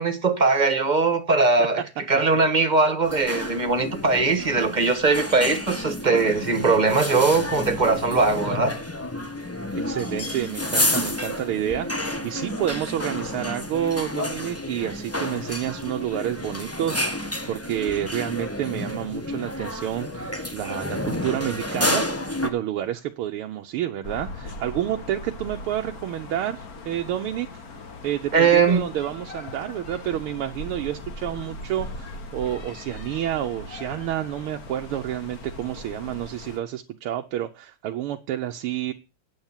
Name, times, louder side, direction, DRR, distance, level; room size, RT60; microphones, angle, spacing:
voice 1, 0.0-1.8 2.1-8.7 28.3-28.9, right 4 dB, 25° right, 1.3 m, -20 dB
sound 1, 3.0-22.5, left 1 dB, 15° left, 0.6 m, -30 dB
voice 2, 9.7-22.0 22.4-27.6 28.0-38.9, right 11 dB, 90° right, 1.8 m, -29 dB
sound 2, 24.0-36.6, left 2 dB, 45° left, 1.7 m, -39 dB
9.4 x 7.5 x 7.3 m
omnidirectional pair, 2.3 m